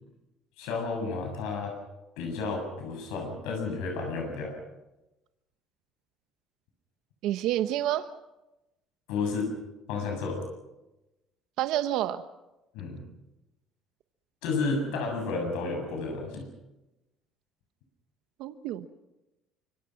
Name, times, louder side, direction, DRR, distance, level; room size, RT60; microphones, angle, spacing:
voice 1, 0.6-1.8 2.2-4.5 9.1-9.5 9.9-10.4 12.7-13.0 14.4-16.5, left 4 dB, 85° left, 2 dB, 7.2 m, -31 dB
voice 2, 7.2-8.1 11.6-12.2 18.4-18.9, right 13 dB, 70° right, 10 dB, 1.1 m, -28 dB
26.0 x 24.0 x 6.0 m, 0.98 s
cardioid pair, 140°, 0 cm